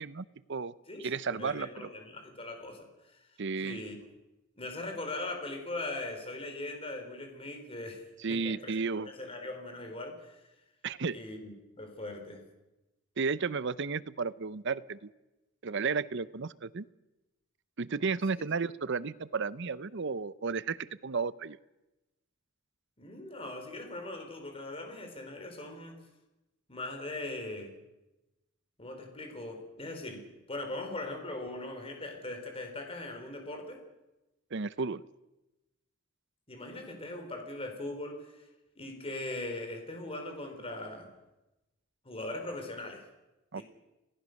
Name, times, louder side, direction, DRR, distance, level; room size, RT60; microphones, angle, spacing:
voice 1, 0.0-0.7 1.0-1.9 3.4-3.8 8.2-9.1 10.8-11.2 13.2-15.1 15.6-16.9 17.8-21.6 34.5-35.0 43.5-43.6, right 4 dB, 60° right, 17 dB, 0.7 m, -33 dB
voice 2, 0.9-3.3 3.6-4.0 4.6-8.0 8.3-10.5 11.1-12.4 23.0-26.0 26.7-27.8 28.8-33.8 36.5-38.4 38.8-41.1 42.0-43.1 43.5-43.6, left 2 dB, 30° left, 4 dB, 4.1 m, -40 dB
28.5 x 18.0 x 6.5 m, 1.0 s
head